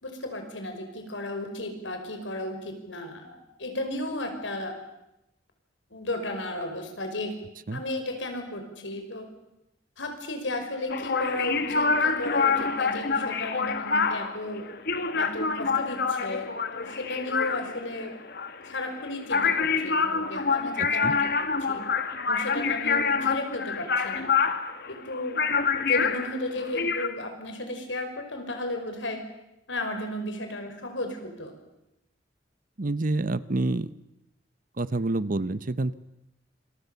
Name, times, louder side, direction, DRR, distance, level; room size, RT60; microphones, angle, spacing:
voice 1, 0.0-4.7 5.9-7.4 7.7-9.3 10.0-14.6 15.1-18.1 18.6-21.3 21.7-21.8 22.3-24.3 24.9-25.4 25.9-29.2 29.7-31.5, left 1 dB, 90° left, 5 dB, 5.4 m, -34 dB
sound 1, 10.9-27.1, left 5 dB, 60° left, 1.7 m, -27 dB
voice 2, 20.8-21.1 32.8-33.9 34.8-35.9, right 2 dB, 50° right, 16 dB, 0.9 m, -28 dB
26.5 x 23.5 x 7.0 m, 0.89 s
head